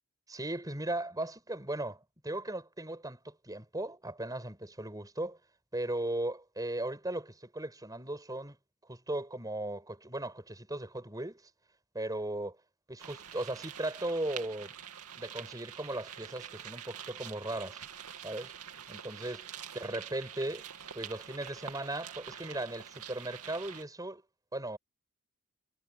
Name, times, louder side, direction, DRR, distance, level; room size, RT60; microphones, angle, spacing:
voice 1, 0.3-5.4 5.7-8.6 8.9-11.4 11.9-12.6 12.9-14.8 15.2-17.8 18.2-18.5 18.9-19.5 19.7-20.6 20.9-24.2 24.5-24.8, right 1 dB, 15° right, 6.8 m, -37 dB
sound 1, 13.0-23.8, right 9 dB, 85° right, 2.5 m, -46 dB
head